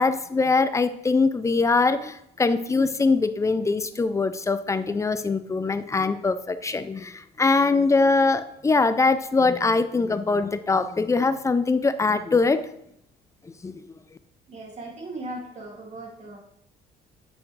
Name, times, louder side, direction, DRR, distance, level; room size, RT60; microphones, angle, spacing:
voice 1, 0.0-12.7 13.6-13.8, left 3 dB, 15° left, 12 dB, 0.5 m, -22 dB
voice 2, 14.5-16.4, right 2 dB, 40° right, -1 dB, 2.5 m, -37 dB
8.2 x 6.0 x 3.3 m, 0.74 s
cardioid pair, 110°, 17 cm